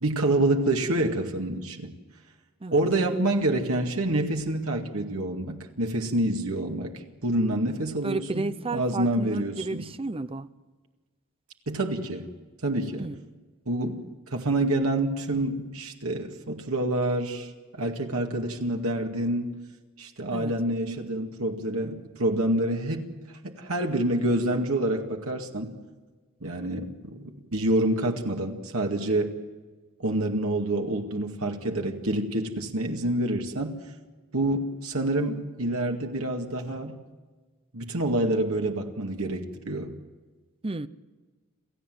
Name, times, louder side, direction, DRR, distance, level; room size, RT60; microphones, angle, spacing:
voice 1, 0.0-1.9 2.7-8.4 8.7-9.9 11.7-12.3 12.6-13.1 13.7-14.0 14.3-17.5 17.8-19.6 20.0-23.1 23.4-25.7 26.4-26.9 27.2-29.4 30.0-33.8 34.3-37.0 37.7-39.9, right 1 dB, 90° right, 3 dB, 2.1 m, -27 dB
voice 2, 8.0-10.5 13.0-13.2 20.3-20.5 40.6-40.9, right 2 dB, 25° right, 13 dB, 0.7 m, -32 dB
28.5 x 15.0 x 7.8 m, 1.4 s
head